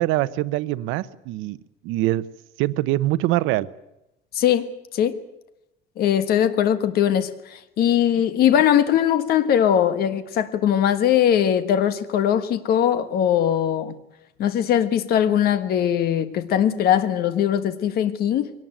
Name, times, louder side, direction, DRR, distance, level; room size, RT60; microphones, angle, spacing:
voice 1, 0.0-1.6 1.8-2.3 2.6-3.7, right 16 dB, 85° right, 0.9 m, -23 dB
voice 2, 4.3-4.7 4.9-5.2 6.0-13.9 14.4-18.5, left 10 dB, 50° left, 1.4 m, -20 dB
22.0 x 18.5 x 9.1 m
cardioid pair, 170°, 20 cm